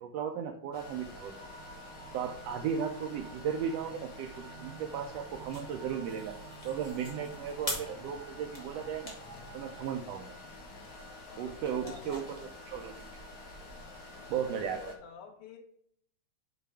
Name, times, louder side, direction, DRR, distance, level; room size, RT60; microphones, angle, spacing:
voice 1, 0.0-1.3 2.1-6.4 6.6-9.1 9.5-10.3 11.4-13.1 14.3-14.8, right 7 dB, 80° right, 5 dB, 1.5 m, -36 dB
sound 1, 0.7-15.0, left 2 dB, 65° left, 0.8 m, -49 dB
sound 2, 1.3-9.9, right 5 dB, 60° right, 3.0 m, -51 dB
sound 3, 5.0-13.8, left 1 dB, 20° left, 0.8 m, -46 dB
voice 2, 11.3-12.5 14.5-15.6, left 6 dB, 90° left, 2 dB, 2.6 m, -49 dB
6.9 x 3.3 x 4.7 m, 0.67 s
omnidirectional pair, 3.3 m